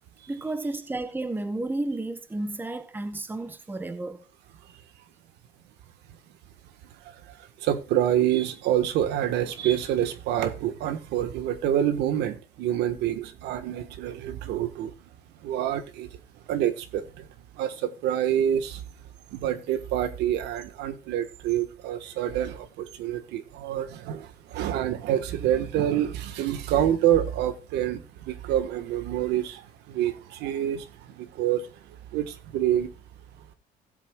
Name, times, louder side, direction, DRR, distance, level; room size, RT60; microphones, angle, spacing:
voice 1, 0.3-4.2, right 2 dB, 10° right, 1.1 m, -32 dB
voice 2, 7.0-14.9 15.4-16.2 16.5-17.3 17.5-18.8 19.3-32.9, right 11 dB, 85° right, 1.4 m, -27 dB
16.5 x 7.8 x 2.4 m
cardioid pair, 110°, 17 cm